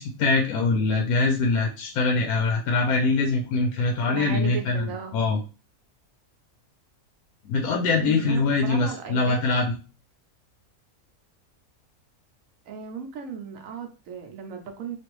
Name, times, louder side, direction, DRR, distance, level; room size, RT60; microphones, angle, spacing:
voice 1, 0.0-5.4 7.4-9.7, left 3 dB, 80° left, 2 dB, 1.0 m, -23 dB
voice 2, 4.0-5.2 8.0-9.4 12.7-15.0, right 6 dB, 70° right, 4 dB, 0.9 m, -36 dB
3.2 x 2.5 x 3.0 m, 0.35 s
omnidirectional pair, 1.6 m